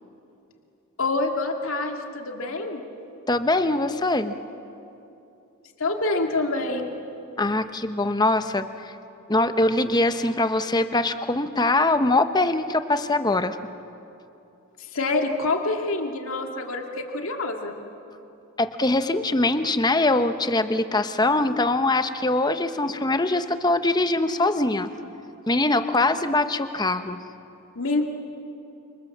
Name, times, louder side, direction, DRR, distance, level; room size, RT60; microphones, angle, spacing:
voice 1, 1.0-2.8 5.8-6.9 14.8-17.8 27.8-28.1, left 2 dB, 70° left, 3 dB, 2.4 m, -26 dB
voice 2, 3.3-4.4 7.4-8.9 9.3-13.6 18.6-24.9 25.5-27.2, left 2 dB, 20° left, 9 dB, 0.9 m, -22 dB
29.0 x 27.0 x 7.4 m, 2.8 s
head